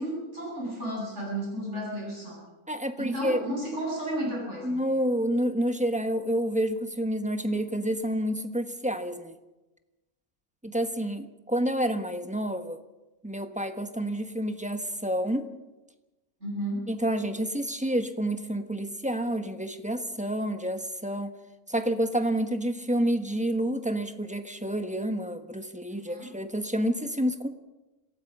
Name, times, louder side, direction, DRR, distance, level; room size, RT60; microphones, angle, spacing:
voice 1, 0.0-2.4 3.0-4.8 16.4-16.9 25.9-26.3, right 1 dB, 50° right, -3 dB, 8.5 m, -33 dB
voice 2, 2.7-3.4 4.6-9.4 10.6-12.8 13.2-15.5 16.9-21.3 21.7-27.5, right 1 dB, 5° right, 7 dB, 1.0 m, -29 dB
27.0 x 17.5 x 5.5 m, 1.1 s
omnidirectional pair, 1.6 m